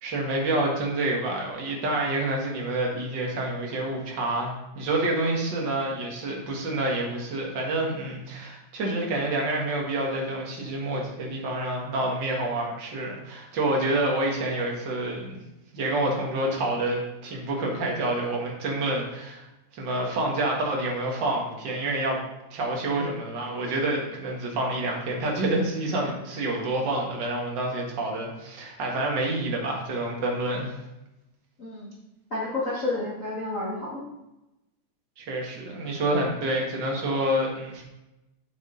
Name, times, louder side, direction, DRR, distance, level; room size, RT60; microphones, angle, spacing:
voice 1, 0.0-15.4 15.7-19.4 19.7-22.2 22.5-30.8 35.2-37.8, right 1 dB, 45° right, -1 dB, 1.8 m, -28 dB
voice 2, 32.3-34.0, left 2 dB, 40° left, -6 dB, 1.1 m, -30 dB
8.0 x 6.2 x 3.8 m, 0.95 s
omnidirectional pair, 3.5 m